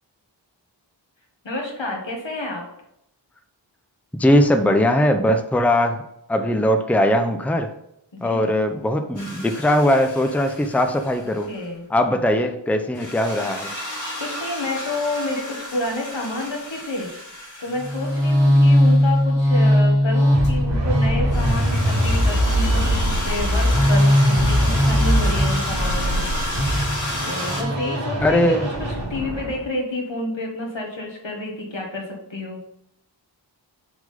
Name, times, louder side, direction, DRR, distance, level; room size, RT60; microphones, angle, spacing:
voice 1, 1.4-2.6 8.1-8.5 11.2-11.8 14.2-17.1 17.6-26.2 27.2-28.4 29.1-32.6, left 2 dB, 85° left, 0 dB, 1.7 m, -29 dB
voice 2, 4.2-6.0 6.3-7.7 8.2-11.5 11.9-13.7 28.2-28.7, left 1 dB, 5° left, 7 dB, 0.6 m, -20 dB
sound 1, 9.2-11.6 13.0-19.1 20.4-20.5 21.3-27.6, left 1 dB, 40° left, 1.9 m, -32 dB
sound 2, 17.8-29.6, equal, 70° right, 2.5 m, -19 dB
6.3 x 3.7 x 5.1 m, 0.80 s
wide cardioid pair, 50°, 44 cm